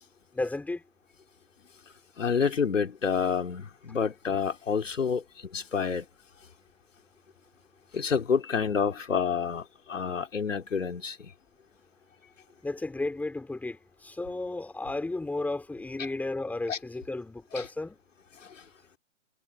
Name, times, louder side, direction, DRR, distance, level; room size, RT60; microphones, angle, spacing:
voice 1, 0.3-0.8 12.6-18.0, left 2 dB, 5° left, 4.0 m, -33 dB
voice 2, 2.2-5.2 5.5-6.1 7.9-11.2 16.7-16.8, left 6 dB, 80° left, 3.7 m, -28 dB
hypercardioid pair, 135°, 37 cm